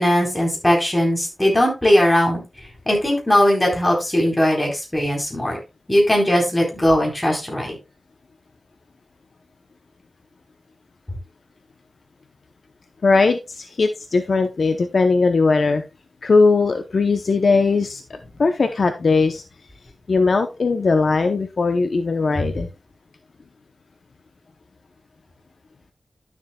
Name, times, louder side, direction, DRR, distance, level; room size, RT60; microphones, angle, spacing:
voice 1, 0.0-2.4 2.9-5.6 5.9-7.8, equal, 15° left, 0 dB, 3.9 m, -19 dB
voice 2, 13.0-15.8 16.2-18.0 18.4-19.4 20.1-22.7, left 4 dB, 60° left, 6 dB, 0.8 m, -19 dB
12.0 x 7.1 x 2.3 m, 0.26 s
wide cardioid pair, 100°, 0 cm